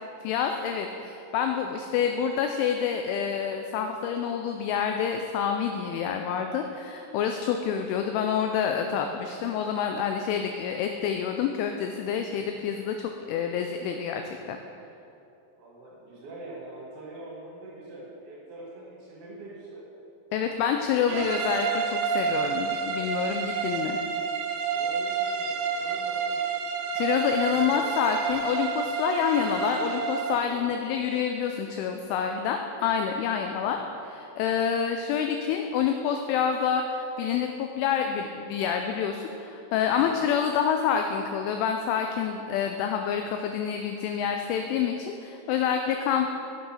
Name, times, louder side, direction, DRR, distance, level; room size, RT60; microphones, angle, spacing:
voice 1, 0.2-14.6 20.3-24.0 26.9-46.3, left 7 dB, 85° left, 5 dB, 2.7 m, -27 dB
voice 2, 15.6-19.8 24.6-26.4 27.4-28.1 30.4-30.7 33.6-33.9 39.9-40.2, right 2 dB, 65° right, -5 dB, 2.8 m, -44 dB
sound 1, 21.1-30.5, right 6 dB, 85° right, 2.7 m, -29 dB
8.4 x 6.8 x 5.7 m, 2.8 s
omnidirectional pair, 6.0 m